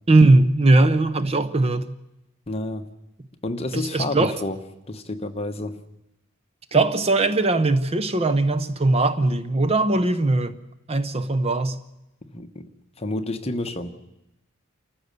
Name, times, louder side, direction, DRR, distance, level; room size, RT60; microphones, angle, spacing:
voice 1, 0.1-1.9 3.7-4.3 6.7-10.5 10.9-11.8, right 2 dB, 30° right, 0.7 m, -19 dB
voice 2, 2.5-2.9 3.4-4.6 4.9-5.8 12.3-12.7 13.0-13.9, left 2 dB, 30° left, 1.2 m, -29 dB
28.0 x 14.5 x 6.8 m
head